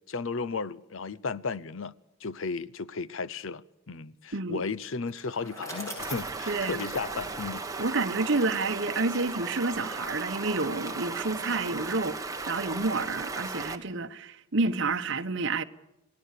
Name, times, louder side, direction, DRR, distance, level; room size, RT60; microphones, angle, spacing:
voice 1, 0.1-1.9 2.2-7.6, left 4 dB, 60° left, 0.7 m, -34 dB
Bicycle, 5.0-8.2, equal, 15° left, 7.7 m, -43 dB
Stream, 6.0-13.8, right 3 dB, 15° right, 1.5 m, -36 dB
voice 2, 6.5-6.9 7.8-15.6, right 3 dB, 55° right, 1.1 m, -29 dB
28.0 x 18.5 x 6.7 m
head